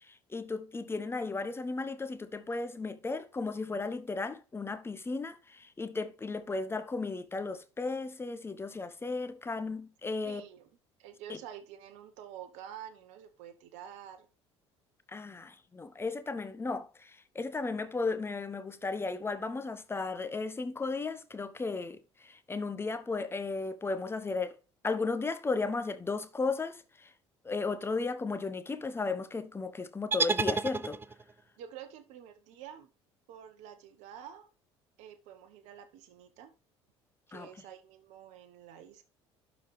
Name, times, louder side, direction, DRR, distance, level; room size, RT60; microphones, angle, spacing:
voice 1, 0.3-10.4 15.1-24.6 24.8-27.1 27.4-31.0 37.3-37.5, left 3 dB, 15° left, 0.9 m, -35 dB
voice 2, 10.2-10.7 11.0-14.3 31.6-32.9 33.3-34.5 35.0-36.5 37.3-39.0, right 9 dB, 55° right, 0.9 m, -48 dB
sound 1, 30.1-31.4, right 4 dB, 15° right, 0.5 m, -30 dB
12.0 x 4.0 x 3.3 m
figure-of-eight pair, 60°, 15 cm